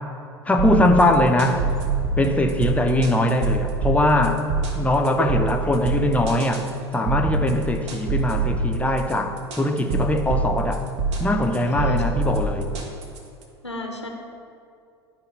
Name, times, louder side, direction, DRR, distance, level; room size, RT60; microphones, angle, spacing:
voice 1, 0.5-1.7 2.2-4.5 4.7-10.9 11.2-12.7, left 1 dB, 10° left, 5 dB, 0.6 m, -21 dB
sound 1, 0.6-13.4, right 3 dB, 45° right, 1.1 m, -26 dB
voice 2, 11.6-12.0 13.6-14.1, left 1 dB, 85° left, 2 dB, 0.7 m, -33 dB
11.0 x 5.0 x 3.2 m, 2.4 s
figure-of-eight pair, 75°, 14 cm